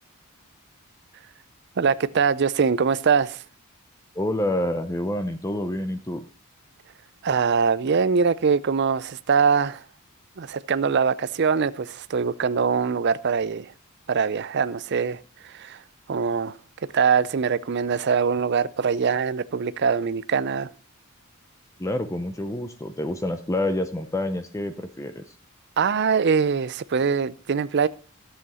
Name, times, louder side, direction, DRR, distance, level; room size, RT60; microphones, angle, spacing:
voice 1, 1.8-3.4 7.2-9.8 10.4-13.7 14.1-15.8 16.1-16.6 16.9-20.7 25.8-27.9, right 6 dB, 50° right, 0.4 m, -23 dB
voice 2, 4.1-6.2 21.8-25.2, left 1 dB, 15° left, 0.5 m, -28 dB
12.5 x 7.7 x 4.2 m
head